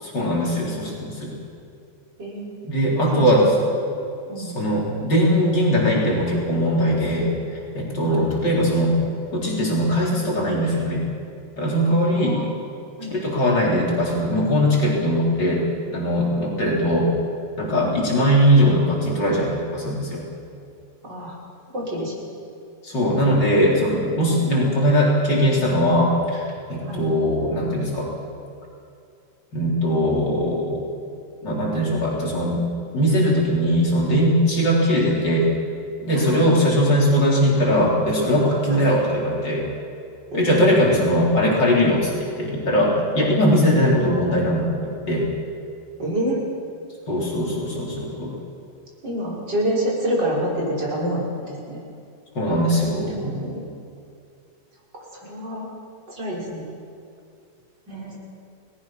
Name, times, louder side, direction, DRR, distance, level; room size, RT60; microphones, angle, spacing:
voice 1, 0.0-1.4 2.6-3.5 4.4-9.0 9.3-11.0 11.6-12.4 13.1-15.6 15.9-17.1 17.6-20.2 22.8-28.1 29.5-30.8 31.4-32.7 32.9-35.5 36.0-39.6 40.3-45.3 47.1-48.4 52.3-53.3, equal, 80° left, -4 dB, 4.8 m, -20 dB
voice 2, 2.2-2.5 3.2-3.4 4.2-4.6 8.1-8.3 12.2-12.5 13.0-13.1 17.8-17.9 21.0-21.4 21.7-22.3 26.9-27.0 36.2-36.7 38.7-38.8 40.3-40.4 46.0-46.4 49.0-51.8 52.8-53.6 54.9-55.7 56.1-56.7 57.9-58.1, right 1 dB, 80° right, -4 dB, 6.6 m, -28 dB
29.5 x 19.0 x 6.0 m, 2.4 s
omnidirectional pair, 1.9 m